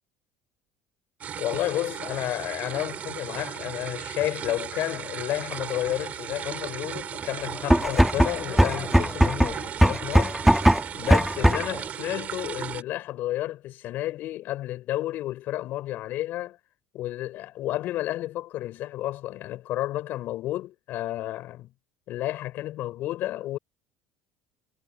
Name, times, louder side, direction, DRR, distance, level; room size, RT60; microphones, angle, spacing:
sound 1, 1.2-12.8, right 9 dB, 45° right, 2.5 m, -36 dB
voice 1, 1.4-10.4 10.9-16.6 16.9-21.7 22.1-23.6, left 14 dB, 65° left, 6.4 m, -31 dB
sound 2, 7.6-11.8, equal, ahead, 2.1 m, -20 dB
supercardioid pair, 95°, 4 cm